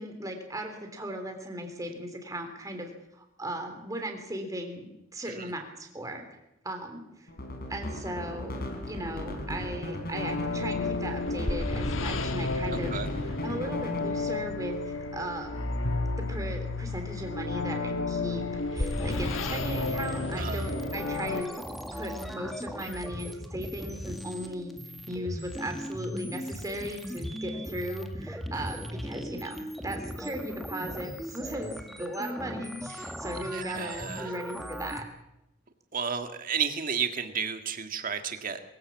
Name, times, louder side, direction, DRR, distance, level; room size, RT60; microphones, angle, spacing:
voice 1, 0.0-6.4 6.6-7.3 7.7-12.9 13.4-15.7 16.3-18.4 18.7-21.6 21.9-24.7 25.1-35.1, right 1 dB, 20° right, 4 dB, 3.2 m, -37 dB
sound 1, 7.3-14.4, left 1 dB, 50° left, 4.4 m, -37 dB
sound 2, 10.1-21.4, left 3 dB, 85° left, 1.4 m, -32 dB
voice 2, 12.7-13.1 20.4-20.6 28.5-28.7 32.9-33.1 33.5-34.3 35.9-38.6, right 6 dB, 45° right, 7 dB, 1.9 m, -33 dB
sound 3, 18.8-35.0, equal, ahead, 1.8 m, -38 dB
22.5 x 15.5 x 7.4 m, 0.88 s
head